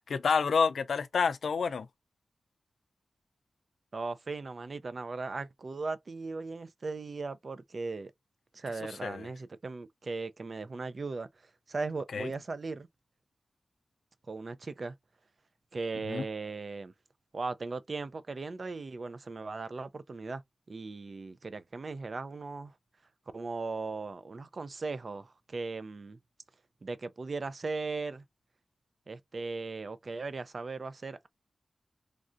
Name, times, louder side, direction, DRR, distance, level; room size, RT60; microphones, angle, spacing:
voice 1, 0.0-1.9 9.0-9.3 12.1-12.3 16.1-16.2, left 5 dB, 90° left, 0.4 m, -28 dB
voice 2, 3.9-8.1 8.5-11.3 11.7-12.9 14.3-14.9 15.7-16.9 17.3-20.4 20.7-22.7 23.3-26.2 26.8-28.2 29.1-31.3, right 3 dB, 55° right, 0.4 m, -38 dB
3.2 x 2.5 x 2.5 m
cardioid pair, 60°, 0 cm